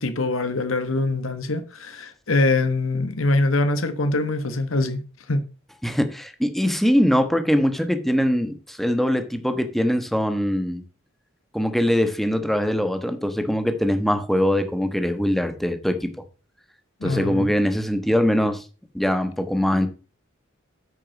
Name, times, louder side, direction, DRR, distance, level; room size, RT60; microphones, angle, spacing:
voice 1, 0.0-5.0 5.3-5.4 17.0-17.5, left 2 dB, 85° left, 1.3 m, -23 dB
voice 2, 5.8-10.8 11.5-16.1 17.0-18.6 18.9-19.9, equal, ahead, 1.2 m, -22 dB
9.0 x 6.5 x 5.3 m
head